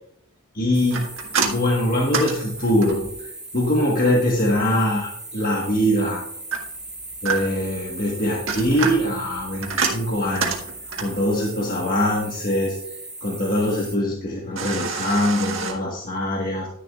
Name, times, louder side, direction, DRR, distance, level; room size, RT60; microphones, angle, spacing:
voice 1, 0.5-1.1 1.4-6.2 7.2-10.5 11.0-12.8 13.2-16.7, left 1 dB, 40° left, -2 dB, 1.4 m, -23 dB
sound 1, 0.7-14.0, right 2 dB, 5° right, 0.9 m, -38 dB
sound 2, 0.9-3.2 6.5-7.7 8.3-11.2 14.6-15.7, right 5 dB, 60° right, 1.7 m, -27 dB
11.5 x 10.5 x 2.4 m, 0.73 s
head